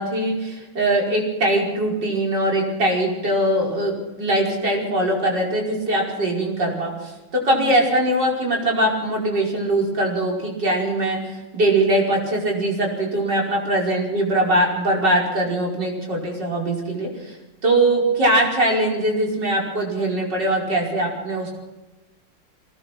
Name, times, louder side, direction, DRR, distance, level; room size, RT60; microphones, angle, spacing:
voice 1, 0.0-17.4 17.6-21.6, right 1 dB, 70° right, -1 dB, 5.9 m, -21 dB
24.0 x 19.0 x 6.2 m, 1.1 s
omnidirectional pair, 2.0 m